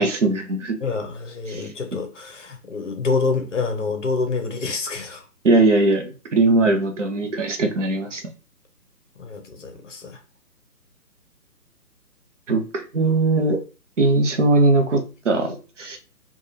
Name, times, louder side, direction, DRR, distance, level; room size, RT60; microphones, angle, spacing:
voice 1, 0.0-0.8 1.5-1.6 5.4-8.2 12.5-13.6 14.0-16.0, right 2 dB, 50° right, 0.6 m, -20 dB
voice 2, 0.8-5.2 9.2-10.2, left 4 dB, 50° left, 0.7 m, -27 dB
3.3 x 2.3 x 2.6 m
hypercardioid pair, 170°, 49 cm